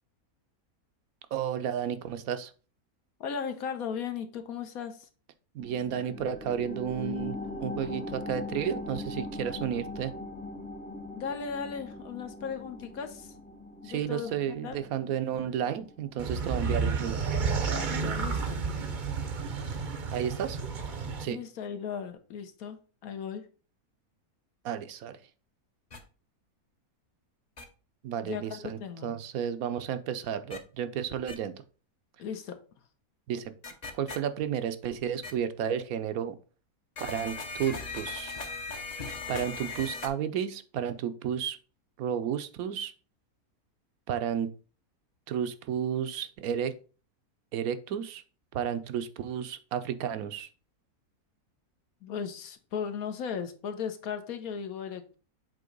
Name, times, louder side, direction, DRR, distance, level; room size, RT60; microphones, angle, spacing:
voice 1, 1.3-2.5 5.5-7.4 7.6-10.1 13.8-17.2 17.8-18.2 20.1-20.6 21.2-21.4 24.6-25.2 28.0-31.6 33.3-33.5 33.9-36.4 37.0-38.3 39.3-41.6 42.0-42.9 44.1-44.5 45.3-46.7 47.5-48.2 48.5-50.5, right 9 dB, 70° right, 11 dB, 1.1 m, -32 dB
voice 2, 3.2-5.1 11.1-13.3 13.8-14.3 14.6-14.8 18.1-18.6 21.2-22.8 23.0-23.4 28.2-29.2 32.2-32.6 52.0-55.1, left 7 dB, 70° left, 7 dB, 1.3 m, -36 dB
sound 1, 5.6-16.7 17.1-17.2, left 2 dB, 10° left, 0.4 m, -41 dB
sound 2, 16.2-21.2, right 5 dB, 40° right, 0.7 m, -31 dB
sound 3, 25.9-26.0 27.6-27.7 30.5-30.6 31.3-31.4 33.6-34.2 35.2-35.3 37.0-40.1, left 4 dB, 35° left, 0.8 m, -38 dB
7.6 x 3.0 x 5.2 m, 0.37 s
omnidirectional pair, 1.6 m